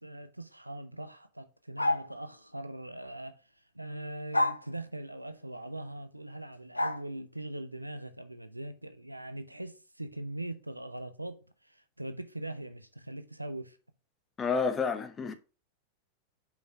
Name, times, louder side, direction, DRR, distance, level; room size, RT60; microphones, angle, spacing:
voice 1, 0.0-3.4 3.7-13.8, right 1 dB, 85° right, 0.6 m, -41 dB
sound 1, 1.8-2.1 4.3-4.6 6.8-7.0, left 2 dB, 85° left, 0.5 m, -27 dB
voice 2, 14.4-15.3, left 5 dB, 20° left, 0.9 m, -29 dB
5.2 x 5.0 x 4.6 m
figure-of-eight pair, 90°, 0 cm